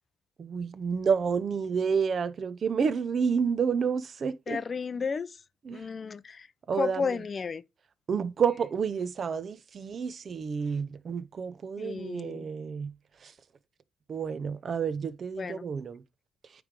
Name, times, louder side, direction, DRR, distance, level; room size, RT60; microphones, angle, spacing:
voice 1, 0.4-4.6 5.6-5.8 6.7-7.2 8.1-12.9 13.2-13.3 14.1-16.0, right 6 dB, 50° right, 0.7 m, -29 dB
voice 2, 4.5-5.4 5.7-6.5 6.7-7.6 11.8-12.5 15.4-15.7, left 5 dB, 40° left, 0.5 m, -33 dB
9.3 x 3.4 x 5.2 m
cardioid pair, 90°, 0 cm